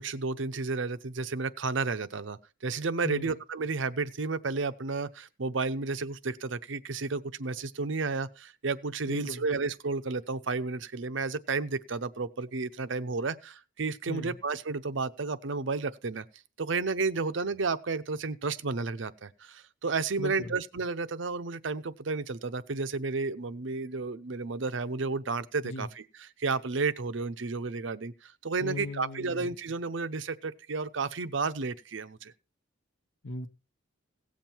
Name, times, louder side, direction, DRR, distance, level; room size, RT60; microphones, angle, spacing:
voice 1, 0.0-16.3 16.6-32.3, right 4 dB, 70° right, 0.7 m, -32 dB
voice 2, 3.0-3.4 9.1-9.4 14.1-14.4 20.2-20.5 25.6-25.9 28.6-29.5 33.2-33.5, left 2 dB, 70° left, 1.0 m, -37 dB
17.0 x 7.4 x 4.5 m
head